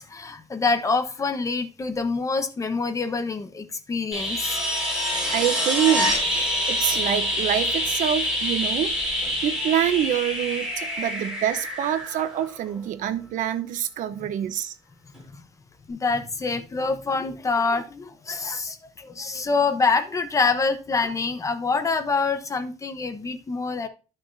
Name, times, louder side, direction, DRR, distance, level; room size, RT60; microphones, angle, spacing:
voice 1, 0.0-4.7 5.2-5.3 14.2-14.3 15.3-15.4 15.9-23.9, left 4 dB, 25° left, 9 dB, 1.0 m, -26 dB
sound 1, 4.1-12.8 15.1-15.2, left 1 dB, 5° right, 4.8 m, -26 dB
voice 2, 5.3-14.7, right 11 dB, 75° right, 11 dB, 0.9 m, -26 dB
11.5 x 6.5 x 2.7 m, 0.32 s
cardioid pair, 145°, 13 cm